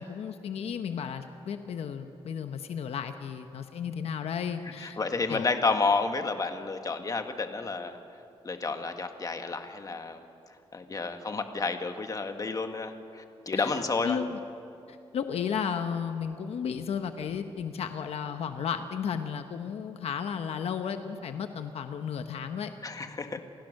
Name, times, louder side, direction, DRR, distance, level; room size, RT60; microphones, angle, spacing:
voice 1, 0.0-5.0 5.3-5.5 13.5-14.4 14.9-22.7, left 7 dB, 80° left, 7 dB, 1.0 m, -34 dB
voice 2, 4.8-8.0 8.4-10.2 10.7-14.2 22.8-23.4, left 4 dB, 35° left, 6 dB, 1.6 m, -30 dB
28.5 x 16.5 x 6.6 m, 2.6 s
cardioid pair, 95°, 10 cm